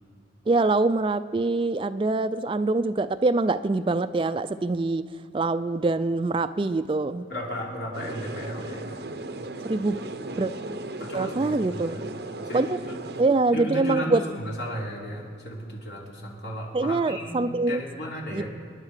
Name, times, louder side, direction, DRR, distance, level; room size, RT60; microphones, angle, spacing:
voice 1, 0.5-5.1 5.3-7.3 9.6-10.0 10.4-10.5 11.1-12.0 12.5-12.7 13.2-14.2 16.7-17.8 18.3-18.5, right 3 dB, 30° right, 12 dB, 0.3 m, -24 dB
voice 2, 7.3-9.0 11.0-12.0 12.4-13.0 13.5-18.5, equal, 65° left, -3 dB, 3.3 m, -34 dB
sound 1, 7.9-13.2, right 2 dB, 55° right, 0.8 m, -36 dB
27.5 x 10.5 x 4.9 m, 2.2 s
head